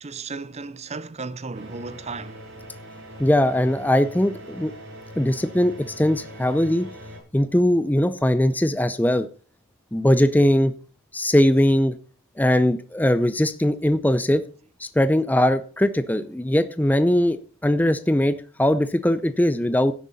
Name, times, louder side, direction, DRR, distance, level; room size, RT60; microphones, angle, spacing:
voice 1, 0.0-2.4, right 4 dB, 30° right, 0.6 m, -35 dB
sound 1, 1.5-7.2, equal, 60° right, 7.2 m, -41 dB
voice 2, 3.2-4.7 5.2-6.9 7.3-9.3 9.9-10.7 11.1-12.0 12.4-14.4 14.8-19.9, left 1 dB, 10° left, 0.5 m, -20 dB
12.5 x 10.5 x 4.1 m
head